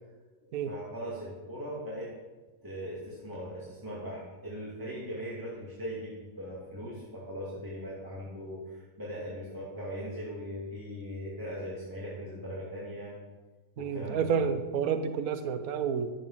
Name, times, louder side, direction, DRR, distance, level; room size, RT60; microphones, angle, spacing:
voice 1, 0.4-2.1 2.6-13.2 13.8-14.5, equal, 15° right, -6 dB, 2.4 m, -39 dB
voice 2, 13.8-16.1, right 7 dB, 80° right, 9 dB, 1.3 m, -29 dB
12.5 x 7.4 x 5.7 m, 1.2 s
omnidirectional pair, 1.5 m